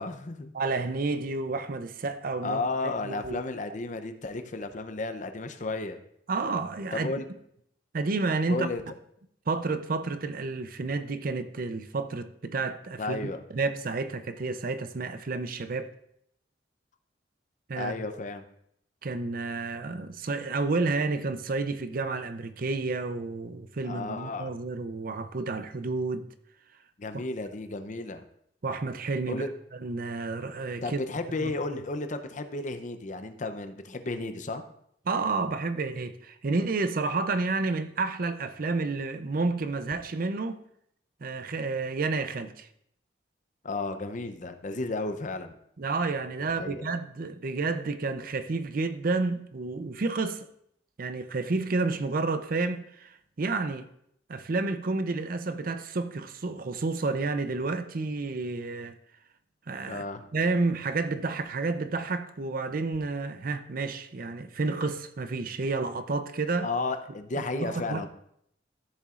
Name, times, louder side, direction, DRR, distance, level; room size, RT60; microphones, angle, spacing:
voice 1, 0.0-0.5 2.4-6.0 6.9-7.3 8.5-8.8 13.0-13.4 17.7-18.4 23.8-24.5 27.0-28.2 29.3-29.5 30.8-34.6 43.6-45.6 46.6-46.8 59.8-60.3 66.6-68.1, left 3 dB, 45° left, 0.6 m, -33 dB
voice 2, 0.5-3.4 6.3-7.1 7.9-8.7 9.5-15.9 17.7-17.9 19.0-26.3 27.1-27.2 28.6-29.5 29.8-31.0 31.4-31.5 35.1-40.6 41.2-42.7 45.8-50.5 51.0-53.9 54.3-59.0 59.7-60.0 60.3-66.7 67.4-68.1, right 3 dB, 50° right, 0.5 m, -30 dB
14.0 x 7.1 x 2.5 m
head